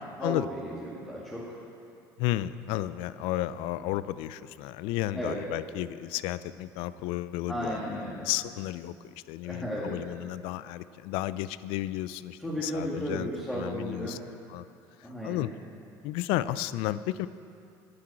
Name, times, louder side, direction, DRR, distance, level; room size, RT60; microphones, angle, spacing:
voice 1, 0.2-1.6 5.1-5.4 7.5-8.3 9.4-9.9 12.4-14.2 15.0-15.4, equal, 5° left, -7 dB, 2.0 m, -34 dB
voice 2, 2.2-8.9 9.3-13.3 13.5-14.2 14.5-14.6 15.2-15.5 16.0-17.3, left 15 dB, 75° left, 16 dB, 0.4 m, -33 dB
11.5 x 6.0 x 8.5 m, 2.5 s
supercardioid pair, 90°, 9 cm